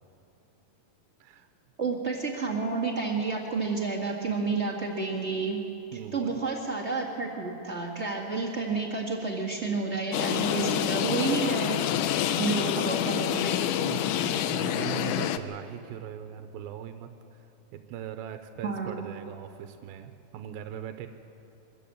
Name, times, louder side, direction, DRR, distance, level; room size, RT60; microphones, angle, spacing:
voice 1, 1.8-5.6 6.1-11.8 12.4-13.6 18.6-19.1, right 4 dB, 30° right, -2 dB, 1.4 m, -30 dB
voice 2, 5.9-6.4 11.6-11.8 13.8-21.1, right 10 dB, 90° right, 8 dB, 2.6 m, -40 dB
sound 1, 10.1-15.4, left 10 dB, 75° left, 2.0 m, -27 dB
23.5 x 14.0 x 8.7 m, 2.8 s
omnidirectional pair, 4.1 m